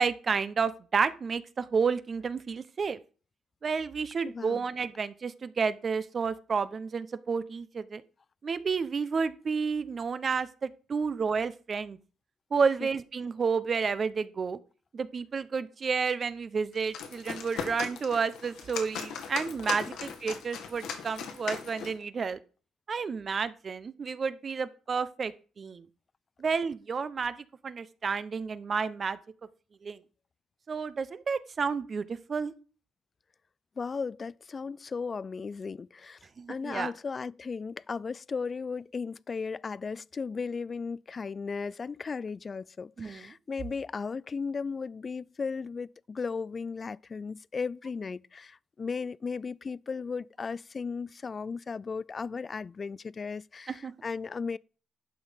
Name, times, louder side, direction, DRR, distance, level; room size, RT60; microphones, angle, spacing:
voice 1, 0.0-3.0 3.6-8.0 8.4-12.0 12.5-14.6 14.9-22.4 22.9-25.8 26.4-29.2 29.8-30.0 30.7-32.5 36.4-36.9 43.0-43.3 53.7-53.9, right 5 dB, 40° right, 0.9 m, -31 dB
voice 2, 4.2-4.6 33.8-36.2 36.5-54.6, left 5 dB, 35° left, 0.4 m, -36 dB
sound 1, 16.7-22.0, left 7 dB, 85° left, 2.1 m, -38 dB
11.0 x 6.3 x 5.2 m
cardioid pair, 90°, 0 cm